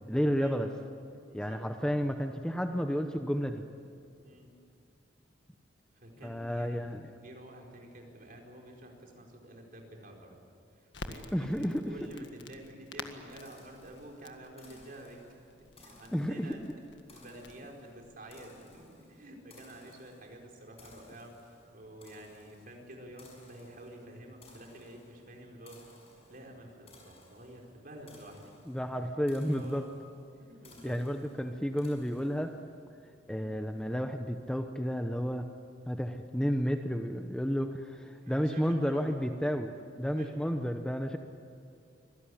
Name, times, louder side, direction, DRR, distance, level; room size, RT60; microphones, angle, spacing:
voice 1, 0.1-0.7 1.3-3.6 6.2-7.0 11.3-11.9 16.1-16.6 28.7-29.8 30.8-32.5 33.3-35.5 35.9-39.7 40.0-41.2, equal, 5° left, 6 dB, 0.8 m, -31 dB
voice 2, 1.3-1.6 4.2-4.5 5.9-6.8 7.2-10.4 10.7-15.2 15.8-16.6 17.1-25.8 26.3-28.5 29.1-29.9 30.3-31.0 33.3-33.6 38.2-39.2 40.1-40.4, right 1 dB, 50° right, 1 dB, 4.5 m, -49 dB
Crackle, 10.9-18.9, left 3 dB, 65° left, 1.7 m, -50 dB
sound 1, 13.3-32.7, left 2 dB, 35° left, 6.6 m, -60 dB
25.5 x 17.5 x 10.0 m, 2.4 s
head